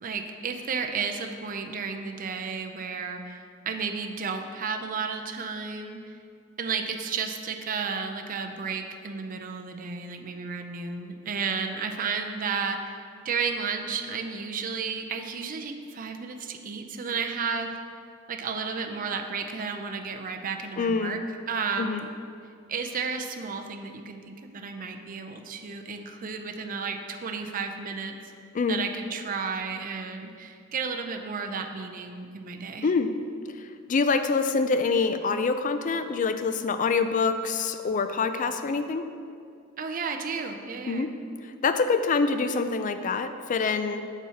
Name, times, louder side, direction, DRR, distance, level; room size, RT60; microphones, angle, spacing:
voice 1, 0.0-6.2 6.6-17.7 18.3-22.1 22.7-28.1 28.7-32.9 39.8-41.1, right 5 dB, 40° right, 4 dB, 0.5 m, -33 dB
voice 2, 20.8-21.2 21.8-22.0 28.5-28.8 32.8-33.1 33.9-39.1 40.9-41.1 41.6-44.0, left 4 dB, 40° left, 9 dB, 0.4 m, -25 dB
6.9 x 4.6 x 5.6 m, 2.3 s
head